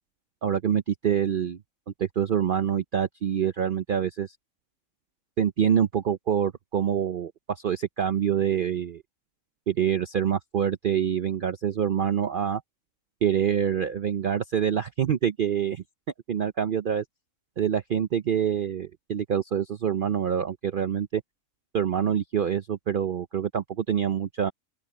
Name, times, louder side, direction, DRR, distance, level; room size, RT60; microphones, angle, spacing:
voice 1, 0.4-1.6 2.0-4.4 5.4-9.0 9.7-12.6 13.2-15.8 16.3-17.0 17.6-21.2 21.7-24.5, right 9 dB, 55° right, 0.6 m, -26 dB
open air
omnidirectional pair, 1.4 m